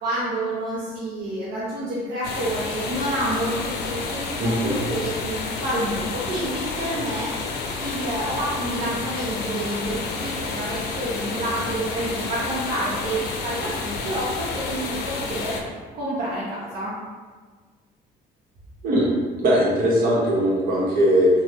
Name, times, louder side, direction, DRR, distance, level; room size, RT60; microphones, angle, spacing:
voice 1, 0.0-15.6 15.9-16.9, right 1 dB, 75° right, -8 dB, 0.7 m, -29 dB
sound 1, 2.2-15.6, left 4 dB, 75° left, 0.5 m, -30 dB
voice 2, 4.4-4.9 18.8-19.1 19.4-21.3, equal, 55° right, -5 dB, 1.0 m, -20 dB
3.3 x 2.2 x 2.9 m, 1.4 s
cardioid pair, 110°, 17 cm